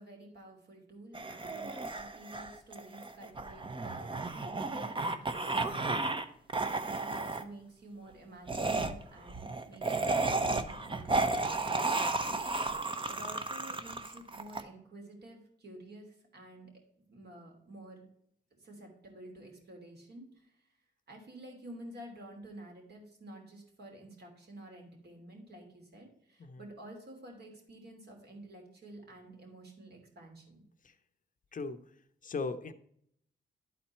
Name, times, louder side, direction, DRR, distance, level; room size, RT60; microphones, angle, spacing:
voice 1, 0.0-6.0 6.7-12.4 13.1-16.7 17.1-18.1 18.5-20.5 21.1-30.6, right 1 dB, 60° right, 1 dB, 2.8 m, -51 dB
sound 1, 1.1-6.2 6.5-7.4 8.5-14.6, right 3 dB, 25° right, 0.8 m, -33 dB
voice 2, 32.2-32.7, left 4 dB, 45° left, 10 dB, 0.7 m, -37 dB
11.0 x 4.2 x 4.3 m, 0.70 s
cardioid pair, 75°, 19 cm